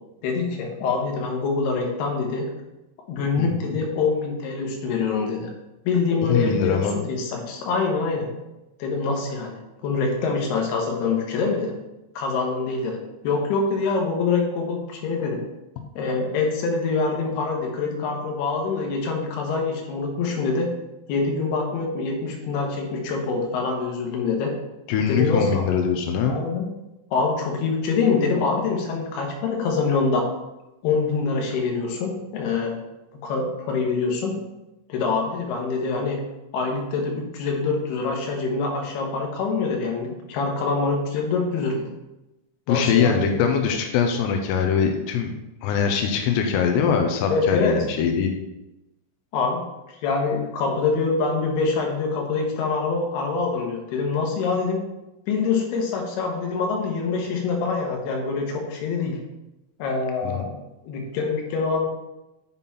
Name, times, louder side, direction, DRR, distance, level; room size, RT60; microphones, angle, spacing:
voice 1, 0.2-2.5 3.1-5.5 5.9-8.3 8.8-11.7 12.2-15.4 16.0-20.7 21.1-24.5 25.1-25.7 26.2-26.7 27.1-30.2 30.8-32.7 33.2-34.3 34.9-36.2 36.5-41.9 42.7-43.4 47.2-47.7 49.3-49.6 49.9-54.8 55.3-59.2 59.8-60.6 60.8-61.9, left 4 dB, 70° left, 1 dB, 2.8 m, -25 dB
voice 2, 3.4-3.8 6.2-7.0 24.9-26.4 42.7-45.3 45.6-48.3 60.2-60.4, left 7 dB, 90° left, 4 dB, 2.5 m, -22 dB
7.2 x 5.4 x 4.1 m, 0.98 s
omnidirectional pair, 5.6 m